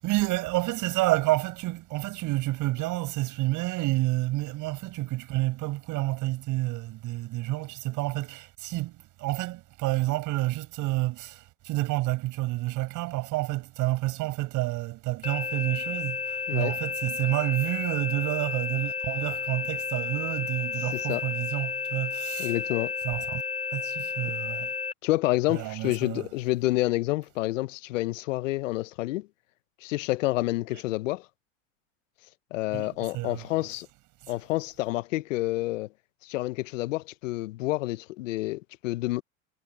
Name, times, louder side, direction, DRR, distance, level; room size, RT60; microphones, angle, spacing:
voice 1, 0.0-22.6 23.0-23.4 23.7-24.7 25.5-26.3 32.7-33.7 34.2-34.3, right 19 dB, 50° right, 7.4 m, -29 dB
sound 1, 15.2-24.9, left 6 dB, 15° left, 3.1 m, -32 dB
voice 2, 22.4-22.9 25.0-29.3 29.8-31.2 32.5-33.9 34.3-35.9 36.2-39.2, left 18 dB, 75° left, 0.9 m, -28 dB
hypercardioid pair, 100°, 38 cm